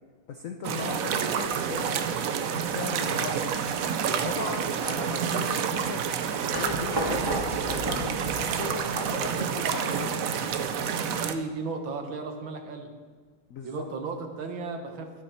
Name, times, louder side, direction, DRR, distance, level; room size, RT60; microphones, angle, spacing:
voice 1, 0.3-1.9 2.5-3.6 4.2-6.0 6.6-7.3 7.7-10.2 13.5-13.9, left 5 dB, 75° left, 5 dB, 0.7 m, -37 dB
sound 1, 0.6-11.3, right 7 dB, 90° right, 0.7 m, -29 dB
sound 2, 6.5-9.5, right 1 dB, 10° right, 1.7 m, -33 dB
voice 2, 11.1-12.9 13.6-15.2, right 4 dB, 70° right, 4 dB, 1.9 m, -35 dB
12.5 x 10.0 x 4.4 m, 1.5 s
omnidirectional pair, 2.3 m